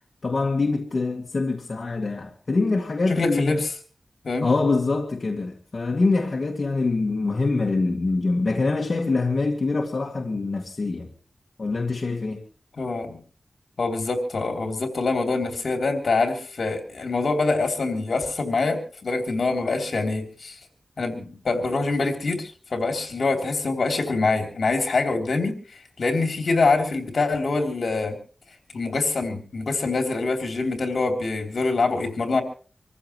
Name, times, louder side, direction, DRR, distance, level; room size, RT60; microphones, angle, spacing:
voice 1, 0.2-3.6 4.4-11.1 11.6-12.4, left 3 dB, 55° left, 2.0 m, -24 dB
voice 2, 3.1-3.7 4.2-4.5 12.8-13.2 13.8-20.6 21.0-25.6 26.0-28.2 28.7-32.4, left 3 dB, 75° left, 3.2 m, -25 dB
26.5 x 14.5 x 3.1 m
wide cardioid pair, 75°, 0 cm